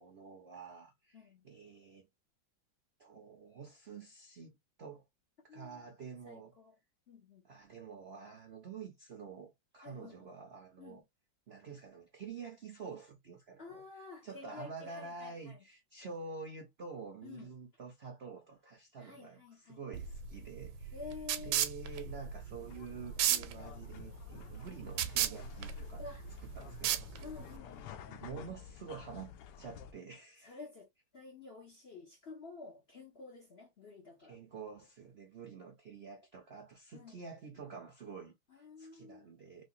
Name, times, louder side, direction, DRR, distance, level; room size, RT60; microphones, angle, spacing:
voice 1, 0.0-2.1 3.0-5.0 5.4-6.5 7.4-11.0 11.5-13.8 14.2-21.0 21.4-26.0 26.4-27.1 28.1-30.6 34.3-38.4 38.8-39.6, right 5 dB, 65° right, 0.6 m, -48 dB
voice 2, 1.1-1.5 5.5-5.8 6.3-6.8 7.1-7.4 9.8-10.3 10.8-11.0 13.6-15.6 17.2-17.5 19.0-19.8 20.9-21.6 26.0-26.3 27.2-28.0 30.4-30.9 31.1-34.4 36.9-37.2 38.5-39.3, left 4 dB, 50° left, 0.8 m, -50 dB
sound 1, 19.9-27.6, right 10 dB, 85° right, 1.4 m, -36 dB
sound 2, 22.6-29.9, left 8 dB, 70° left, 1.1 m, -51 dB
3.2 x 3.2 x 2.6 m
omnidirectional pair, 2.1 m